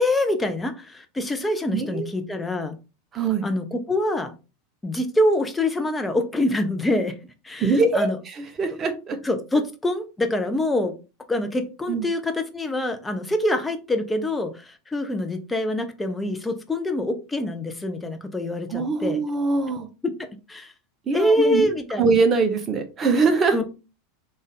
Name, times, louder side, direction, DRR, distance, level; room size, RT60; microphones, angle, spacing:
voice 1, 0.0-2.7 3.4-4.3 4.8-7.1 7.4-8.2 9.2-10.9 11.3-19.2 20.0-20.7 21.1-22.0 23.5-23.6, left 1 dB, 10° left, 0.7 m, -25 dB
voice 2, 1.7-2.1 3.1-3.5 7.6-9.2 11.9-12.1 18.7-19.9 21.1-21.7 22.0-23.6, right 4 dB, 30° right, 0.8 m, -22 dB
3.5 x 2.6 x 3.6 m
figure-of-eight pair, 85°, 0 cm